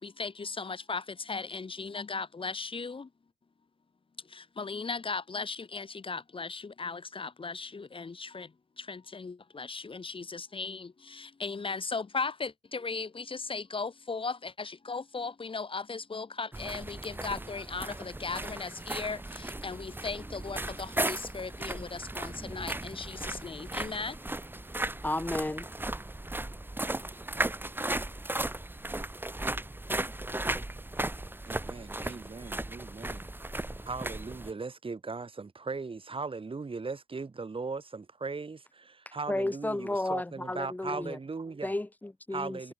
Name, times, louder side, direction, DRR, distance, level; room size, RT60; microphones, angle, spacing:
voice 1, 0.0-3.1 4.3-24.3, left 4 dB, 25° left, 1.4 m, -37 dB
sound 1, 16.5-34.5, right 1 dB, 10° right, 2.1 m, -36 dB
voice 2, 25.0-25.7 39.3-41.2 41.6-42.7, left 2 dB, 10° left, 0.6 m, -32 dB
voice 3, 31.5-33.3 33.9-41.7 42.3-42.7, right 4 dB, 25° right, 2.6 m, -38 dB
cardioid pair, 90°, 20 cm